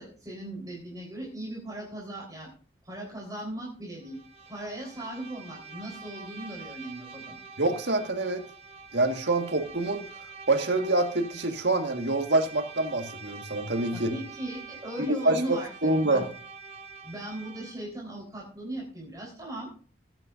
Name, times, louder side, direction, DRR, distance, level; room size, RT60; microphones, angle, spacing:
voice 1, 0.0-2.5 2.8-4.2 4.5-7.4 13.9-16.2 17.0-19.7, right 1 dB, 20° right, 3.9 m, -38 dB
Bowed string instrument, 4.0-17.9, right 5 dB, 35° right, 1.2 m, -46 dB
voice 2, 7.6-8.4 8.9-10.1 10.5-14.1 15.0-16.3, right 2 dB, 80° right, 1.7 m, -26 dB
20.0 x 9.0 x 2.6 m
head